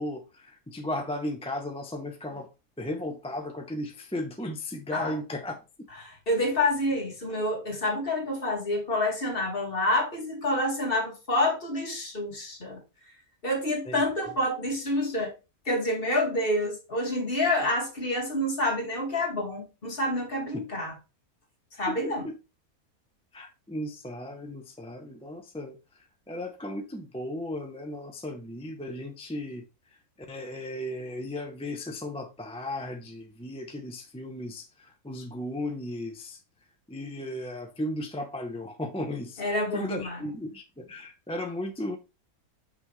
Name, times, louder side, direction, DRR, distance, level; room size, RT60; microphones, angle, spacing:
voice 1, 0.0-2.5 2.8-5.5 13.9-14.0 21.9-22.3 23.3-25.8 26.3-29.6 30.3-36.4 36.9-42.0, left 1 dB, 5° left, 0.6 m, -35 dB
voice 2, 6.0-12.8 13.4-15.3 15.7-21.0 21.8-22.3 39.4-40.3, left 1 dB, 40° left, 2.2 m, -28 dB
6.1 x 5.8 x 3.2 m
omnidirectional pair, 1.6 m